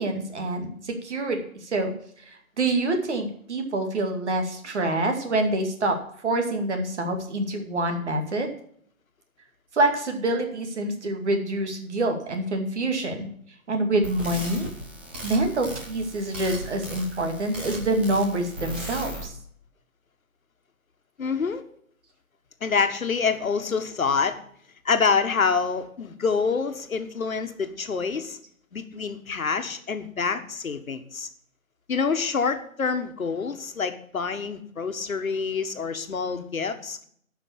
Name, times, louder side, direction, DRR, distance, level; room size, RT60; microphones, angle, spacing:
voice 1, 0.0-1.9 2.3-6.0 6.2-8.5 9.7-13.3 13.7-14.7 15.2-19.3, right 2 dB, 55° right, 5 dB, 2.4 m, -26 dB
sound 1, 14.0-19.2, equal, 10° right, 0.7 m, -37 dB
voice 2, 21.2-21.6 22.6-24.4 24.8-28.4 28.7-31.3 31.9-37.0, left 5 dB, 75° left, 8 dB, 1.5 m, -26 dB
9.5 x 5.8 x 8.4 m, 0.63 s
figure-of-eight pair, 155°, 42 cm